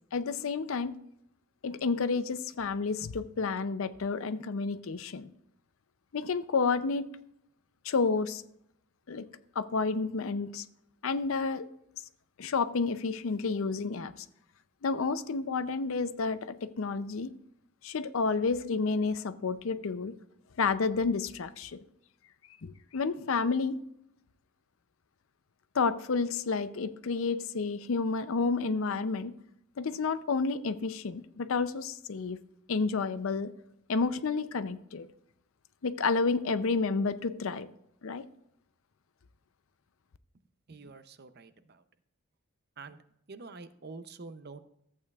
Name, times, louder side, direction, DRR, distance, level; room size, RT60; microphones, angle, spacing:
voice 1, 0.1-0.9 1.6-5.3 6.1-7.1 7.8-8.4 9.1-9.3 9.6-10.6 11.0-11.7 12.4-14.3 14.8-17.3 17.8-20.2 20.6-21.8 22.6-23.8 25.7-29.3 29.8-32.4 32.7-33.5 33.9-35.1 35.8-37.7 38.0-38.2, left 4 dB, 65° left, 0.5 m, -30 dB
voice 2, 40.7-41.8 42.8-43.0 43.3-44.7, right 3 dB, 45° right, 0.6 m, -47 dB
14.0 x 8.5 x 2.4 m
head